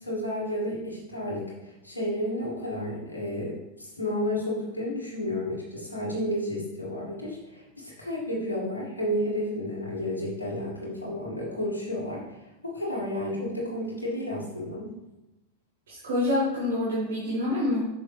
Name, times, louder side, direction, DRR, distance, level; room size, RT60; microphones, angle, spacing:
voice 1, 0.0-14.9, left 1 dB, 80° left, -5 dB, 1.8 m, -32 dB
voice 2, 15.9-17.9, left 1 dB, 60° right, -7 dB, 2.0 m, -26 dB
6.2 x 6.1 x 3.2 m, 0.98 s
figure-of-eight pair, 90°, 0 cm